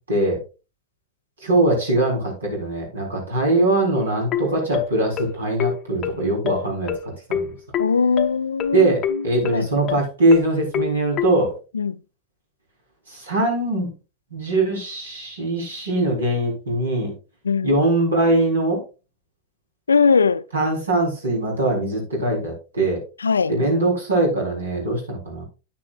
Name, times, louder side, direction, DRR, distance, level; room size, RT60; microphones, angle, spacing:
voice 1, 0.1-0.4 1.4-7.5 8.7-11.5 13.1-13.9 14.3-17.1 17.6-18.8 20.5-23.0 23.5-25.4, right 2 dB, 70° right, 4.0 m, -21 dB
sound 1, 4.0-11.3, left 9 dB, 30° left, 0.8 m, -26 dB
voice 2, 7.8-9.3 9.5-9.7 11.7-12.0 17.4-17.7 19.9-20.4 23.2-23.6, left 5 dB, 75° left, 0.4 m, -20 dB
9.7 x 9.6 x 2.4 m
figure-of-eight pair, 90°, 0 cm